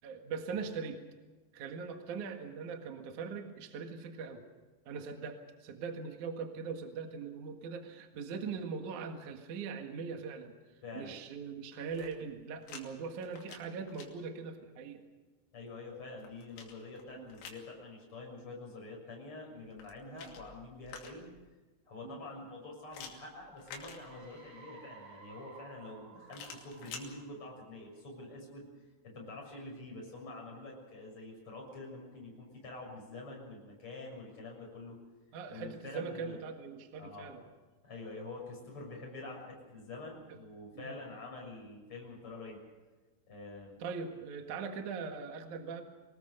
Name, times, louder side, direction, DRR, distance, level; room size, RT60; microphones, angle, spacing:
voice 1, 0.0-1.0 1.5-4.4 4.9-10.5 10.9-15.0 17.2-17.3 20.1-20.3 22.0-22.2 29.9-30.0 35.3-37.4 40.7-41.0 43.8-45.8, right 5 dB, 55° right, 5 dB, 2.3 m, -41 dB
voice 2, 10.8-11.2 15.5-21.3 21.9-28.7 29.0-35.0 35.5-36.4 37.0-37.4 37.8-42.6 43.3-43.8, left 2 dB, 25° left, -1 dB, 7.1 m, -46 dB
sound 1, 11.8-12.8 13.2-14.1 15.8-17.7 19.6-21.4 22.9-24.5 26.3-27.1, left 6 dB, 80° left, 5.2 m, -50 dB
sound 2, 23.6-28.2, right 5 dB, 85° right, 7.0 m, -56 dB
25.5 x 19.5 x 6.6 m, 1.2 s
omnidirectional pair, 5.8 m